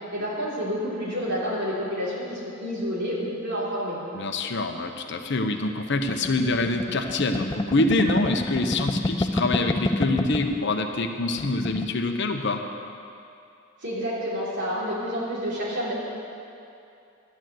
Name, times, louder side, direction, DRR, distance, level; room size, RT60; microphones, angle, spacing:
voice 1, 0.1-4.0 13.8-15.9, equal, 55° right, -6 dB, 3.7 m, -29 dB
voice 2, 4.1-12.6, left 2 dB, 55° left, 5 dB, 0.9 m, -25 dB
sound 1, 6.1-10.6 10.9-11.1 11.3-11.9, left 2 dB, 20° left, 0.4 m, -28 dB
12.0 x 9.0 x 7.7 m, 2.6 s
head